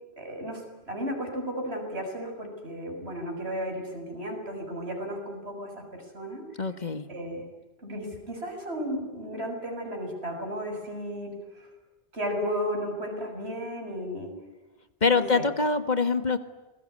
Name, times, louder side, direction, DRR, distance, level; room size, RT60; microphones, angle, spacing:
voice 1, 0.2-6.7 7.1-7.4 7.8-11.7 12.1-14.3 15.1-15.4, equal, 80° right, 3 dB, 7.4 m, -34 dB
voice 2, 6.6-7.1 15.0-16.4, left 4 dB, 45° left, 10 dB, 1.6 m, -24 dB
28.0 x 21.5 x 9.6 m, 1.1 s
omnidirectional pair, 1.1 m